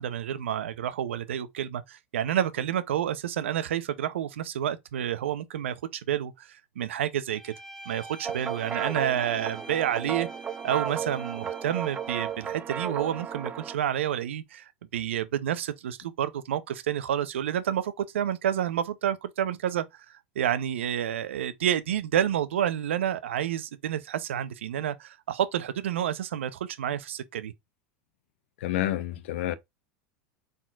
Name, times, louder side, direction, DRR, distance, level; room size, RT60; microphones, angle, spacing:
voice 1, 0.0-7.5 7.9-10.3 10.6-19.8 20.4-27.5, right 10 dB, 85° right, 0.6 m, -29 dB
Bowed string instrument, 7.3-12.6, right 2 dB, 5° left, 2.0 m, -45 dB
sound 1, 8.2-13.8, right 7 dB, 25° right, 0.5 m, -34 dB
voice 2, 28.6-29.5, left 13 dB, 75° left, 0.8 m, -29 dB
4.2 x 3.7 x 2.4 m
hypercardioid pair, 105°, 6 cm